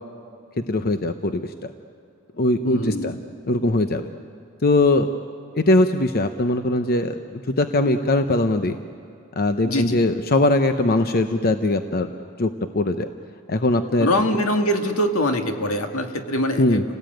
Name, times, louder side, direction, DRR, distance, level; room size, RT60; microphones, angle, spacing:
voice 1, 0.7-1.7 2.4-3.1 3.5-4.1 4.6-5.1 5.6-8.8 9.4-12.1 12.4-13.1 13.5-14.1 16.6-16.8, left 2 dB, 45° left, 8 dB, 0.8 m, -21 dB
voice 2, 2.6-3.2 9.6-10.0 14.0-16.8, left 1 dB, 80° left, 5 dB, 2.1 m, -23 dB
29.5 x 18.0 x 9.1 m, 2.4 s
head